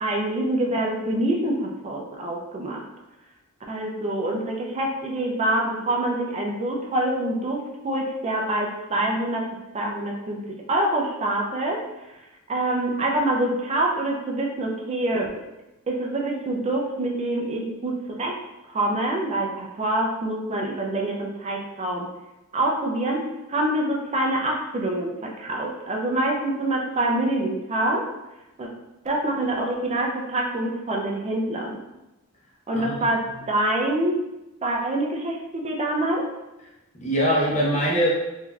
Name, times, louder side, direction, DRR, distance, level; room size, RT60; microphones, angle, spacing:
voice 1, 0.0-2.8 3.7-9.5 9.7-10.4 10.7-11.8 12.5-15.3 15.9-18.4 18.7-22.1 22.5-23.2 23.5-28.1 28.6-28.7 29.0-31.8 32.7-34.2 34.6-36.3, right 1 dB, 30° right, 0 dB, 0.4 m, -25 dB
voice 2, 32.7-33.4 36.9-38.1, equal, 35° left, -5 dB, 0.8 m, -23 dB
3.7 x 2.6 x 2.3 m, 0.98 s
head